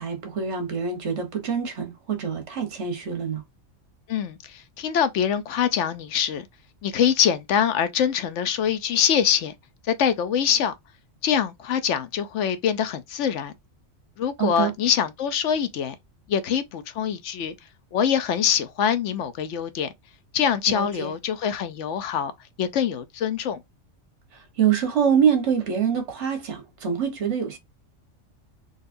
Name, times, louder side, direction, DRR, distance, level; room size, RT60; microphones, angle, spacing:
voice 1, 0.0-3.4 14.4-14.7 20.7-21.1 24.6-27.6, right 7 dB, 65° right, 1.3 m, -25 dB
voice 2, 4.1-6.5 6.8-9.5 9.9-10.7 11.2-13.5 14.2-16.0 16.3-17.5 17.9-19.9 20.3-22.3 22.6-23.6, left 8 dB, 70° left, 0.9 m, -24 dB
3.9 x 2.5 x 2.5 m
omnidirectional pair, 1.3 m